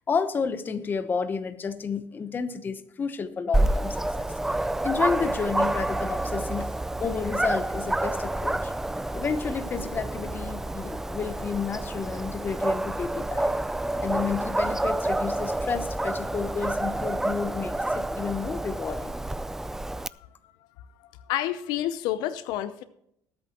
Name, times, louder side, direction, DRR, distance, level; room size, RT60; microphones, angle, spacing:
voice 1, 0.1-4.3 4.8-6.7 7.0-8.7 9.1-13.5 14.0-19.2, left 5 dB, 30° left, 11 dB, 0.9 m, -31 dB
Dog, 3.5-20.1, right 1 dB, 5° right, 0.3 m, -28 dB
voice 2, 21.3-22.8, left 12 dB, 75° left, 13 dB, 0.7 m, -29 dB
19.5 x 8.8 x 3.0 m, 0.74 s
cardioid pair, 120°, 7 cm